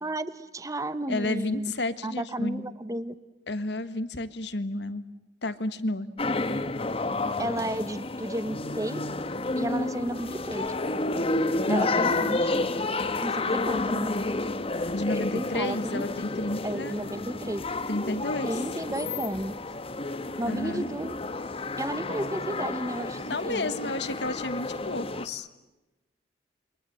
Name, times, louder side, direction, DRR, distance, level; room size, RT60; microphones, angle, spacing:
voice 1, 0.0-1.7 2.0-3.1 7.4-9.0 9.6-10.7 11.7-12.7 13.2-14.1 15.3-16.0 16.6-17.6 18.4-19.6 20.4-21.2 21.8-23.7, right 1 dB, 20° right, 13 dB, 1.1 m, -33 dB
voice 2, 1.1-2.6 3.5-5.0 5.4-6.1 11.7-11.9 14.9-17.0 17.9-18.5 20.5-20.8 23.2-25.5, left 2 dB, 65° left, 12 dB, 1.6 m, -31 dB
sound 1, 6.2-25.3, left 2 dB, 30° left, 1.2 m, -30 dB
28.0 x 24.0 x 7.9 m, 1.1 s
head